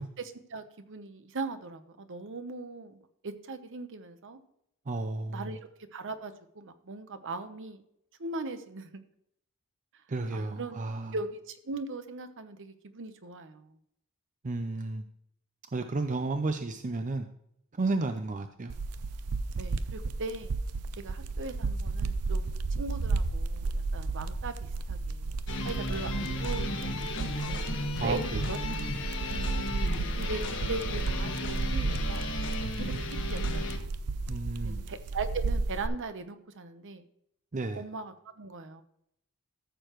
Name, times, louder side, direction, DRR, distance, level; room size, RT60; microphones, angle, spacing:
voice 1, 0.2-4.4 5.3-5.6 5.9-7.8 8.2-9.0 10.3-13.8 19.5-20.5 21.0-24.5 24.9-25.3 25.6-27.7 28.0-28.6 29.3-29.5 30.1-30.4 30.7-32.3 32.8-33.9 34.6-37.0 37.7-38.8, right 3 dB, 60° right, 10 dB, 0.9 m, -39 dB
voice 2, 4.9-5.6 10.1-11.2 14.4-15.0 15.7-17.3 17.7-18.7 28.0-28.4 34.3-34.8 37.5-37.8, right 3 dB, 35° right, 8 dB, 0.5 m, -32 dB
sound 1, 18.7-35.9, right 3 dB, 80° right, 0.6 m, -33 dB
sound 2, 25.5-33.8, left 2 dB, 55° left, 1.4 m, -35 dB
14.0 x 6.7 x 3.0 m, 0.75 s
head